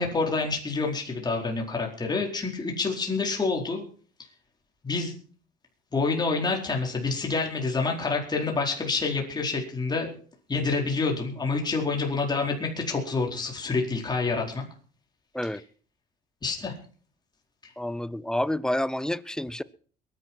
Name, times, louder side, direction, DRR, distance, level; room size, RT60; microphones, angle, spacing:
voice 1, 0.0-3.8 4.8-5.1 5.9-10.1 10.5-14.7 15.4-15.5 16.4-16.7 17.6-17.7, left 4 dB, 25° left, 4.5 m, -27 dB
voice 2, 17.8-19.6, left 1 dB, 5° left, 0.7 m, -29 dB
22.0 x 10.5 x 4.5 m
cardioid pair, 110°, 17 cm